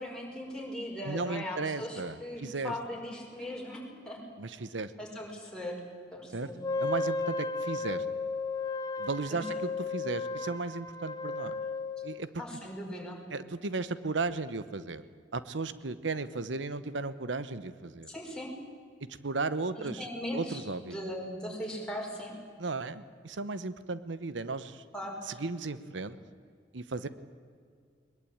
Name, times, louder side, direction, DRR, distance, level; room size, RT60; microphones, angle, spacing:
voice 1, 0.0-4.2 5.0-5.8 6.1-6.6 9.3-9.4 12.4-13.2 18.1-18.5 19.8-22.3 24.9-25.4, left 1 dB, 5° left, -2 dB, 5.3 m, -39 dB
voice 2, 1.0-2.7 4.4-4.9 6.3-6.5 6.8-8.0 9.0-11.6 12.0-12.3 13.3-15.0 15.3-18.1 19.2-20.1 20.3-21.0 22.6-24.8 25.3-26.2 26.7-27.1, right 3 dB, 85° right, 14 dB, 0.9 m, -35 dB
Wind instrument woodwind instrument, 6.6-12.2, left 3 dB, 20° left, 1.2 m, -34 dB
21.5 x 21.0 x 8.7 m, 2.1 s
head